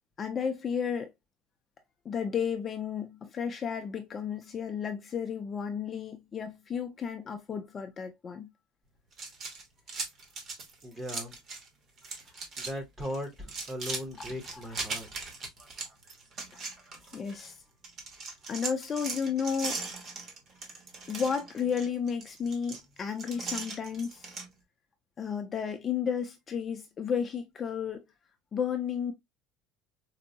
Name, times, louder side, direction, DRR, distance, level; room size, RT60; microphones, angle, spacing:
voice 1, 0.2-1.1 2.0-8.5 14.5-14.6 16.5-16.7 17.1-17.6 18.5-20.1 21.1-24.3 25.2-28.1 28.5-29.1, left 7 dB, 20° left, 0.4 m, -33 dB
sound 1, 9.1-11.7 12.0-12.7 13.0-17.5 17.8-24.5, right 4 dB, 35° right, 1.0 m, -39 dB
voice 2, 10.8-11.4 12.3-15.1, equal, 10° right, 0.7 m, -38 dB
4.4 x 2.0 x 2.5 m
cardioid pair, 170°, 0 cm